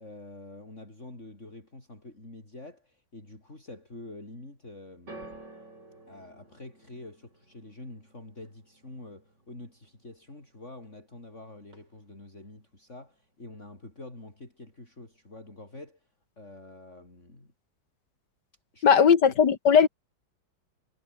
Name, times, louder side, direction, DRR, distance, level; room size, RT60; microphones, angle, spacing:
voice 1, 0.0-5.3 6.1-16.1 16.4-17.5 18.7-19.1, left 2 dB, 35° left, 5.9 m, -46 dB
sound 1, 5.1-11.3 11.6-12.3 13.0-13.1, right 2 dB, 60° right, 8.0 m, -52 dB
voice 2, 18.8-19.9, left 7 dB, 60° left, 2.1 m, -18 dB
omnidirectional pair, 2.2 m